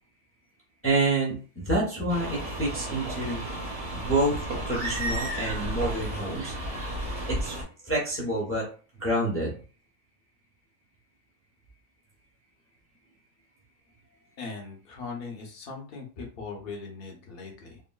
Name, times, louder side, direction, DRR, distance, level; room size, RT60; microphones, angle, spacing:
voice 1, 0.8-3.4 3.9-6.5 7.3-7.6 7.8-8.7 9.0-9.6, right 2 dB, 15° left, -3 dB, 0.6 m, -28 dB
sound 1, 2.1-7.6, right 1 dB, 50° right, 1.1 m, -33 dB
voice 2, 14.4-17.8, left 4 dB, 50° left, 1 dB, 0.9 m, -39 dB
3.6 x 2.0 x 2.2 m, 0.37 s
omnidirectional pair, 1.4 m